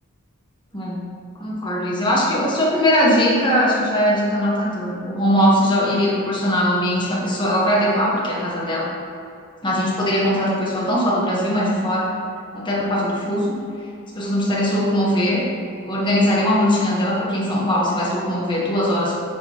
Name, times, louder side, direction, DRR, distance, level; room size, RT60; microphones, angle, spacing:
voice 1, 0.7-1.0 1.4-8.8 9.6-12.1 12.5-13.6 14.1-15.5 15.8-19.2, equal, 20° left, -5 dB, 1.2 m, -20 dB
7.6 x 5.1 x 3.0 m, 2.5 s
head